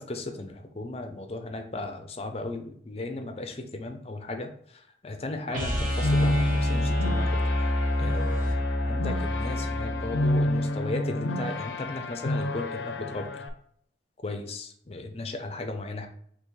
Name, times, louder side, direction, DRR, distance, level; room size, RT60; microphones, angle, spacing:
voice 1, 0.0-4.5 5.0-7.7 8.0-8.6 8.8-13.4 14.2-16.1, left 2 dB, 35° left, 6 dB, 0.5 m, -36 dB
sound 1, 5.5-13.5, left 1 dB, 85° left, 0.5 m, -30 dB
sound 2, 5.5-11.6, left 1 dB, 45° right, 1.1 m, -28 dB
5.5 x 2.8 x 3.2 m, 0.64 s
head